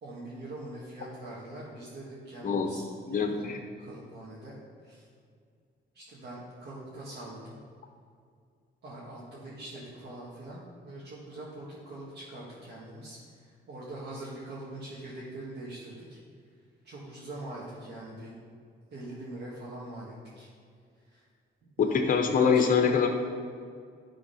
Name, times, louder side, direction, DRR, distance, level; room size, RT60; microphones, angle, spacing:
voice 1, 0.0-2.8 3.1-4.6 4.8-5.1 5.9-7.6 8.8-16.2 16.8-18.3 18.9-20.5 21.1-21.2 21.8-22.7, right 1 dB, 60° right, -8 dB, 1.9 m, -43 dB
voice 2, 3.1-3.6 21.8-23.1, left 6 dB, 45° left, 4 dB, 0.9 m, -24 dB
10.5 x 3.8 x 5.6 m, 2.2 s
cardioid pair, 90°, 20 cm